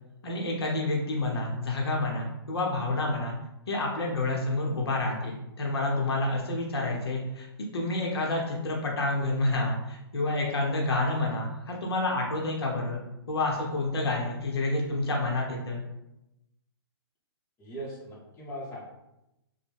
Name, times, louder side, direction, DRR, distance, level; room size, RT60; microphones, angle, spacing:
voice 1, 0.2-3.3 3.7-7.5 7.7-13.0 13.3-15.8, left 2 dB, 70° left, -1 dB, 0.8 m, -29 dB
voice 2, 17.6-18.8, right 1 dB, 20° left, -5 dB, 0.9 m, -39 dB
3.0 x 2.2 x 3.3 m, 0.90 s
figure-of-eight pair, 125°, 14 cm